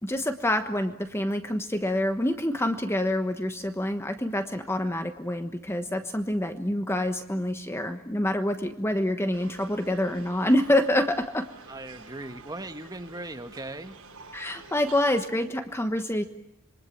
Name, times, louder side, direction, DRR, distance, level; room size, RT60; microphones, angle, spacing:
voice 1, 0.0-11.5 14.3-16.2, left 1 dB, 10° left, 7 dB, 1.2 m, -27 dB
sound 1, 9.3-15.3, right 4 dB, 75° right, 7.0 m, -49 dB
voice 2, 11.7-14.0, right 2 dB, 20° right, 7 dB, 1.6 m, -38 dB
27.0 x 23.5 x 8.7 m, 0.82 s
head